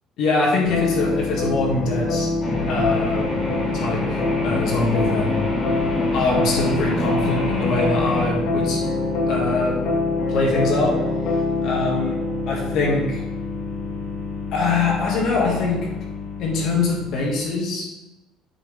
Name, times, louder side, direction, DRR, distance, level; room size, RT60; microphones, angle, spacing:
voice 1, 0.2-2.3 2.7-3.3 3.7-5.4 6.1-8.8 9.3-9.8 10.3-11.0 11.6-12.2 12.5-13.2 14.5-15.9 16.4-17.9, left 3 dB, 50° left, -2 dB, 1.8 m, -23 dB
sound 1, 0.6-17.4, left 3 dB, 70° left, 2.1 m, -25 dB
sound 2, 2.4-8.3, equal, 15° left, 1.6 m, -29 dB
Animal, 5.9-9.9, left 1 dB, 50° right, 2.2 m, -34 dB
8.3 x 5.4 x 3.4 m, 1.0 s
cardioid pair, 175°, 0 cm